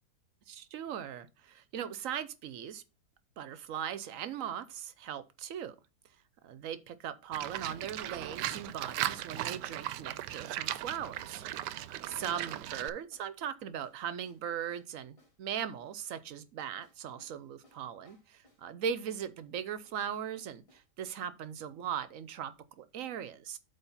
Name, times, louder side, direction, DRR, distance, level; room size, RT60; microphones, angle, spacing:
voice 1, 0.5-2.8 3.4-5.8 6.4-11.4 12.0-23.6, right 8 dB, 60° right, 1.0 m, -39 dB
Livestock farm animals working animals, 7.3-12.9, right 13 dB, 80° right, 1.2 m, -37 dB
sound 1, 8.0-8.3 8.6-8.8 9.1-9.3 9.6-9.9 10.1-10.4 10.7-10.9 11.2-11.5 11.8-12.0 13.1-13.3 13.8-15.4 16.8-18.7 19.4-21.3, left 1 dB, 20° left, 2.1 m, -66 dB
8.3 x 3.5 x 5.6 m
omnidirectional pair, 1.8 m